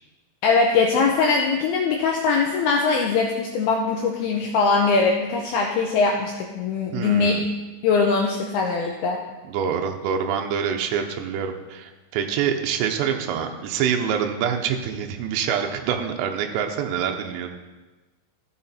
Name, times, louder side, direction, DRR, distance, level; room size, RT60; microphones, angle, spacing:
voice 1, 0.4-7.5 7.8-9.2, left 4 dB, 90° left, 0 dB, 2.2 m, -21 dB
voice 2, 6.9-7.4 9.5-17.5, right 8 dB, 80° right, 4 dB, 2.9 m, -26 dB
13.0 x 6.8 x 4.3 m, 1.2 s
omnidirectional pair, 5.4 m